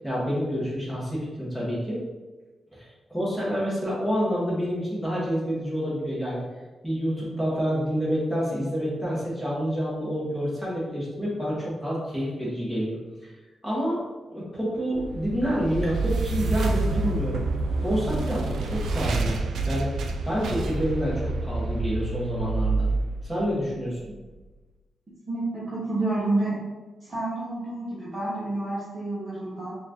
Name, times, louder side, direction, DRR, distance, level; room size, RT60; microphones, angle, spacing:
voice 1, 0.0-2.0 2.7-6.4 6.8-13.3 13.6-14.0 14.3-17.4 17.8-19.9 20.2-22.9 23.2-24.1, equal, ahead, -8 dB, 1.3 m, -28 dB
sound 1, 14.9-24.1, right 3 dB, 80° right, 0.3 m, -28 dB
voice 2, 25.3-26.6 27.0-29.8, right 2 dB, 25° right, -9 dB, 0.9 m, -29 dB
4.3 x 2.6 x 3.0 m, 1.2 s
wide cardioid pair, 160°, 0 cm